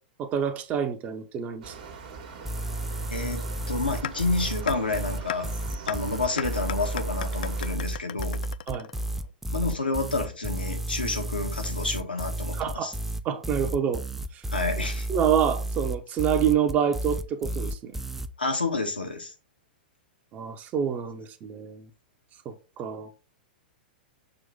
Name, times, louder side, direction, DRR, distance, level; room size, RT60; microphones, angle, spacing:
voice 1, 0.2-1.8 8.7-8.9 12.6-12.9 13.2-14.0 14.3-14.4 15.1-18.0 20.3-21.9 22.4-23.1, right 8 dB, 30° right, 1.0 m, -27 dB
sound 1, 1.6-7.8, right 5 dB, 60° right, 1.7 m, -43 dB
sound 2, 2.4-18.3, right 1 dB, 5° right, 0.5 m, -32 dB
voice 2, 3.1-5.6 5.8-8.4 9.5-12.9 14.5-15.1 18.4-19.3, left 3 dB, 90° left, 1.5 m, -29 dB
sound 3, 4.0-4.1 4.7-4.8 5.3-5.4 5.9-6.0 6.4-9.3, left 11 dB, 65° left, 0.3 m, -34 dB
6.8 x 3.1 x 5.2 m
figure-of-eight pair, 100°, 5 cm